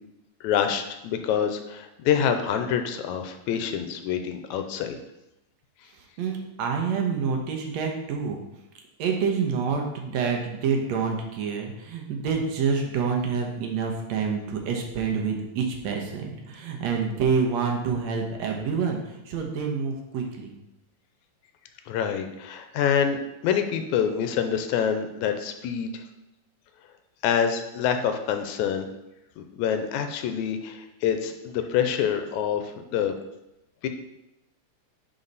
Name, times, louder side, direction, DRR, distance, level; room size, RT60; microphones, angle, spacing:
voice 1, 0.4-5.0 21.9-26.0 27.2-28.9 29.4-33.1 33.8-33.9, left 8 dB, 85° left, 7 dB, 2.1 m, -26 dB
voice 2, 6.2-8.4 9.0-20.5, right 5 dB, 70° right, 2 dB, 2.1 m, -27 dB
10.0 x 4.2 x 4.0 m, 0.91 s
omnidirectional pair, 3.3 m